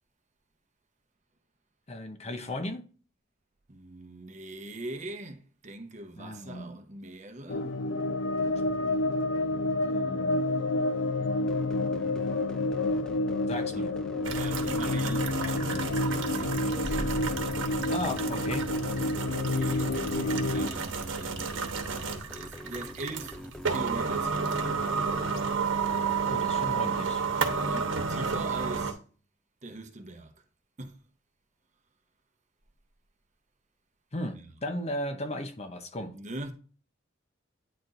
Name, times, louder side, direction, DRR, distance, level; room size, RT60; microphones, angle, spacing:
voice 1, 1.9-2.8 6.2-6.7 9.8-10.4 13.5-13.9 17.9-18.7 26.2-27.2 34.1-36.1, left 1 dB, 35° left, 0.7 m, -36 dB
voice 2, 3.7-7.8 13.5-13.9 14.3-17.4 18.1-18.7 19.5-24.7 27.5-29.0 29.6-30.4 30.8-31.0 34.3-34.5 36.1-36.5, right 2 dB, 40° right, 0.9 m, -42 dB
sound 1, 7.5-20.7, left 2 dB, 75° left, 0.5 m, -29 dB
sound 2, 11.5-25.4, equal, 5° left, 0.4 m, -45 dB
sound 3, 14.2-28.9, right 5 dB, 80° right, 1.1 m, -31 dB
9.3 x 4.4 x 2.5 m
head